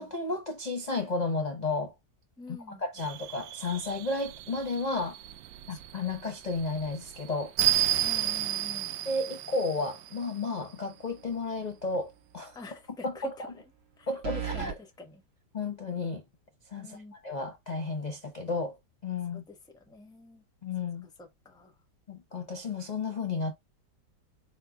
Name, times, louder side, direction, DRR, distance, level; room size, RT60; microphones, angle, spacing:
voice 1, 0.0-1.9 2.5-5.2 5.7-7.5 9.1-12.6 13.0-13.5 14.1-14.7 15.5-16.2 16.7-18.8 19.0-19.4 20.6-21.1 22.1-23.5, left 3 dB, 40° left, 0.6 m, -33 dB
voice 2, 2.4-2.8 5.7-5.8 8.0-8.9 12.5-13.5 14.0-14.1 14.3-15.2 16.8-17.1 19.3-20.4 21.0-21.8, left 2 dB, 5° left, 0.7 m, -47 dB
sound 1, 3.0-10.5, right 13 dB, 80° right, 1.2 m, -32 dB
sound 2, 11.1-11.6 11.9-12.0 14.2-14.8, right 8 dB, 45° right, 1.1 m, -36 dB
5.2 x 4.3 x 2.3 m
omnidirectional pair, 1.9 m